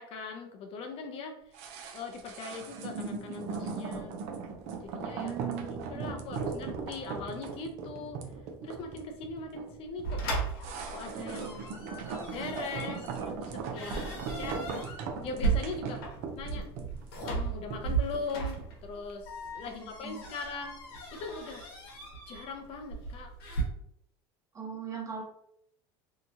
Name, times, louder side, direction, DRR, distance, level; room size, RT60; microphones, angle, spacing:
voice 1, 0.0-1.5 1.9-4.2 4.8-5.4 5.7-8.2 8.6-10.2 10.9-11.6 12.1-14.0 14.4-14.6 15.2-16.0 16.4-16.7 17.2-20.8 21.1-21.7 22.3-23.3, left 4 dB, 50° left, 4 dB, 0.5 m, -40 dB
sound 1, 1.5-18.8 19.1-19.2, right 5 dB, 60° right, 0.5 m, -38 dB
voice 2, 5.2-6.2 19.7-20.2 24.5-25.2, right 8 dB, 25° right, -3 dB, 1.1 m, -39 dB
sound 2, 10.0-23.6, right 4 dB, 85° left, 1.0 m, -36 dB
2.8 x 2.2 x 2.7 m, 0.72 s
supercardioid pair, 100°, 12 cm